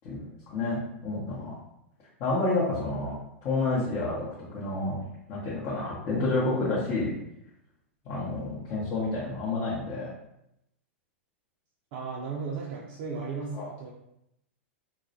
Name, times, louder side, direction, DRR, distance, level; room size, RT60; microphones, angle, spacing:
voice 1, 0.0-1.6 2.2-5.0 5.3-7.1 8.0-10.1 13.5-13.7, left 2 dB, 40° left, -7 dB, 0.7 m, -29 dB
voice 2, 11.9-13.9, right 4 dB, 50° right, -4 dB, 0.4 m, -35 dB
2.3 x 2.0 x 2.7 m, 0.80 s
hypercardioid pair, 100°, 7 cm